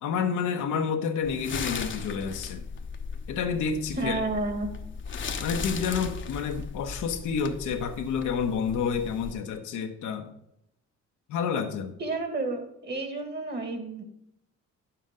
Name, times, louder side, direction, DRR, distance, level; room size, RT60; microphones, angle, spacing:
voice 1, 0.0-2.6 3.3-4.2 5.4-10.3 11.3-12.0, left 6 dB, 80° left, 5 dB, 1.1 m, -29 dB
sound 1, 1.2-9.3, left 5 dB, 40° left, 0.9 m, -37 dB
voice 2, 4.0-4.7 12.0-14.0, right 2 dB, 35° right, 6 dB, 1.8 m, -31 dB
9.2 x 7.2 x 3.7 m, 0.79 s
cardioid pair, 90°, 30 cm